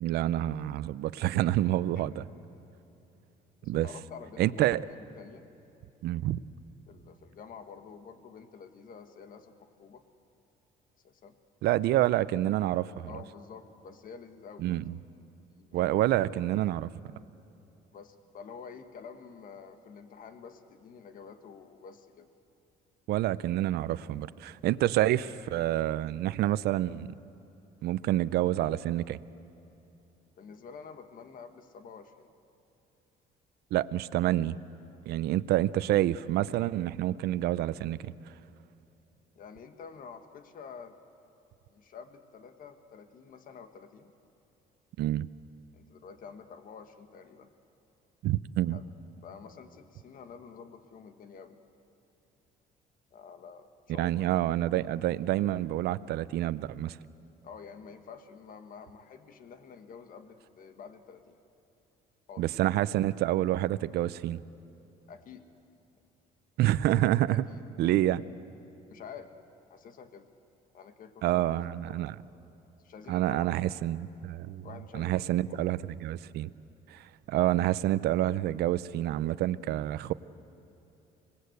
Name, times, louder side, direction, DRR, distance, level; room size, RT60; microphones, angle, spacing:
voice 1, 0.0-2.2 3.6-3.9 4.4-4.8 6.0-6.4 11.6-13.1 14.6-15.0 15.7-16.9 23.1-27.1 27.8-29.2 33.7-34.6 35.1-38.1 45.0-45.3 48.2-48.8 54.0-57.0 62.4-64.4 66.6-67.4 67.8-68.2 71.2-72.2 73.1-74.7 74.9-76.5 76.9-80.1, right 14 dB, 75° right, 16 dB, 0.6 m, -28 dB
voice 2, 3.6-4.8 5.2-5.4 6.9-10.0 11.0-11.3 13.1-15.0 15.5-16.0 17.9-22.3 30.4-32.3 39.3-40.9 41.7-44.1 45.7-47.5 48.7-48.8 49.2-51.6 53.1-54.4 57.4-61.4 62.3-62.5 65.1-65.5 67.3-67.9 68.9-69.3 69.7-70.3 70.7-72.2 72.8-73.7 74.6-75.6, left 6 dB, 55° left, 8 dB, 1.6 m, -49 dB
25.5 x 19.5 x 8.1 m, 2.9 s
cardioid pair, 110°, 17 cm